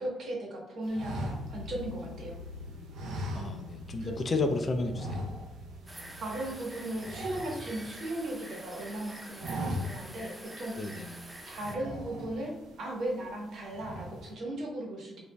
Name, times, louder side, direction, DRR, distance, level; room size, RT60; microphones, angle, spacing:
voice 1, 0.0-2.4 4.0-4.1 6.2-11.0 11.4-15.2, right 1 dB, 65° right, -1 dB, 1.1 m, -37 dB
sound 1, 0.9-2.4 2.9-4.0 4.3-4.5 4.9-5.8 6.0-6.3 6.6-8.3 8.7-9.0 9.3-10.2 10.6-10.7 11.5-12.6 13.1-13.4 13.7-14.3, equal, 80° right, 0.6 m, -38 dB
sound 2, 1.2-7.9, left 2 dB, 75° left, 0.7 m, -46 dB
voice 2, 3.4-5.3 10.8-11.1, left 3 dB, 40° left, 6 dB, 0.4 m, -32 dB
sound 3, 5.9-11.8, right 1 dB, 15° right, 0.5 m, -46 dB
5.0 x 2.5 x 2.2 m, 0.97 s
cardioid pair, 90°, 0 cm